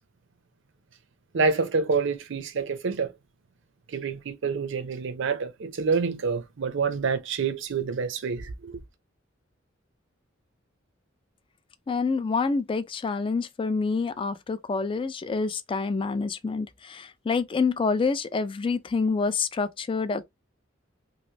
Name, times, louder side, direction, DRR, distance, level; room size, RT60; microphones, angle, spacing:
voice 1, 1.3-3.1 3.9-8.8, right 5 dB, 65° right, 0.5 m, -27 dB
voice 2, 11.9-20.2, left 4 dB, 25° left, 0.3 m, -27 dB
3.1 x 2.6 x 2.7 m
head